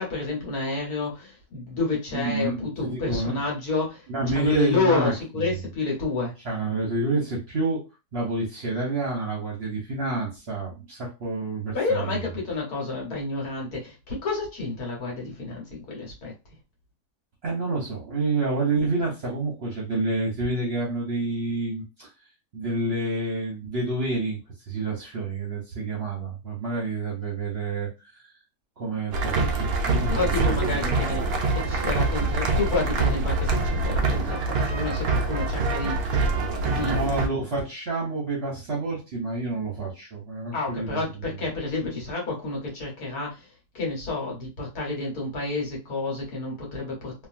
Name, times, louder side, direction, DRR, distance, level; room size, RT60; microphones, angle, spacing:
voice 1, 0.0-6.3 11.7-16.3 30.1-37.1 40.5-43.5 43.8-47.3, left 3 dB, 65° left, -2 dB, 1.6 m, -30 dB
voice 2, 2.1-3.4 4.1-5.6 6.4-7.8 8.1-12.4 17.4-22.1 22.5-24.4 24.7-27.9 28.8-30.9 36.8-41.3, right 2 dB, 50° right, -2 dB, 0.8 m, -28 dB
sound 1, 29.1-37.3, right 3 dB, 85° right, 0.5 m, -25 dB
3.0 x 2.4 x 2.5 m, 0.28 s
omnidirectional pair, 1.8 m